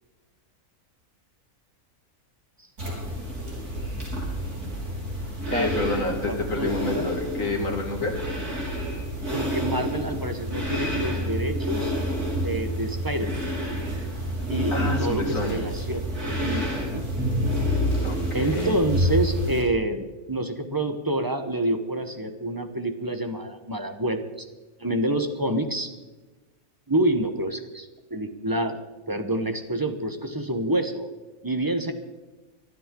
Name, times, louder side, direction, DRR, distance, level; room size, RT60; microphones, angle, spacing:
sound 1, 2.8-19.6, equal, 90° right, 4.4 m, -28 dB
voice 1, 5.5-8.2 14.7-15.6 18.0-18.8, left 2 dB, 60° left, 2 dB, 2.8 m, -28 dB
voice 2, 6.2-7.0 9.3-11.9 12.4-13.5 14.5-17.0 18.3-24.5 24.8-25.9 26.9-28.8 29.1-31.1 31.4-31.9, right 1 dB, 15° right, 7 dB, 0.9 m, -28 dB
23.5 x 12.0 x 3.8 m, 1.2 s
omnidirectional pair, 1.6 m